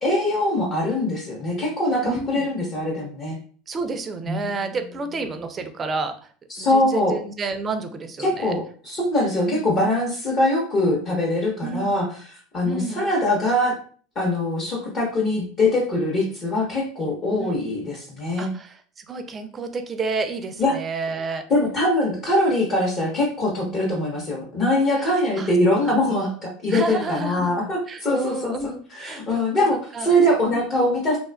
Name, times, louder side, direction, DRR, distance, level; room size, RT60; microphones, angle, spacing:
voice 1, 0.0-3.4 4.3-4.4 6.5-7.2 8.2-12.1 12.5-13.7 14.2-18.5 20.6-20.8 21.5-31.2, left 1 dB, 40° left, -4 dB, 0.8 m, -22 dB
voice 2, 2.0-2.5 3.7-6.3 6.6-8.5 9.4-9.7 11.6-11.9 12.6-13.0 17.4-17.6 18.4-21.4 23.7-23.8 25.0-25.1 25.4-25.5 25.9-26.0 26.7-27.6 27.9-29.2 29.5-30.2 30.4-30.7, right 3 dB, 25° right, 8 dB, 0.4 m, -30 dB
2.5 x 2.3 x 2.2 m, 0.44 s
supercardioid pair, 105°, 0 cm